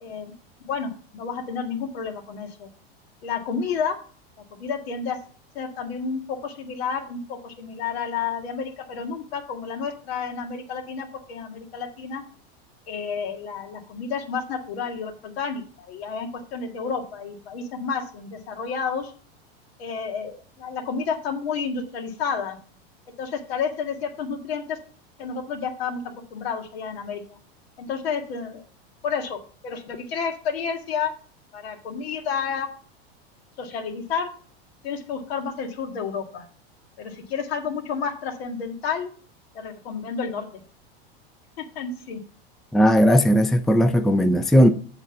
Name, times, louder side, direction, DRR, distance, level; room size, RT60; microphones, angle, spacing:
voice 1, 0.0-0.3 0.6-2.7 3.2-4.0 4.5-5.2 5.5-12.2 12.9-19.1 19.8-22.6 23.2-24.8 25.2-27.4 27.8-28.6 29.0-31.1 31.5-32.7 33.6-34.3 34.8-36.5 37.0-39.1 39.5-40.5 41.6-42.2, left 6 dB, 75° left, 1.9 m, -30 dB
voice 2, 42.7-44.7, equal, ahead, 0.5 m, -17 dB
8.0 x 4.1 x 6.8 m
supercardioid pair, 120°, 31 cm